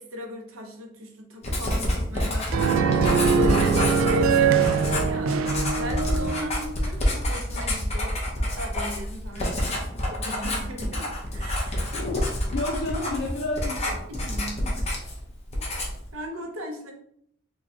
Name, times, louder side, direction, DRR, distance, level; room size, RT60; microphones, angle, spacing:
voice 1, 0.0-2.9 3.3-5.3 5.8-11.9 14.1-14.9 15.5-15.6 16.1-16.9, left 1 dB, 90° right, 2 dB, 0.8 m, -37 dB
Writing, 1.4-15.2 15.5-16.1, left 1 dB, 30° left, 0.9 m, -28 dB
sound 1, 2.5-6.7, right 5 dB, 70° right, 0.3 m, -22 dB
voice 2, 3.6-3.9 6.0-6.3 11.9-14.0, left 2 dB, 70° left, -4 dB, 0.8 m, -31 dB
4.4 x 2.3 x 2.8 m, 0.67 s
head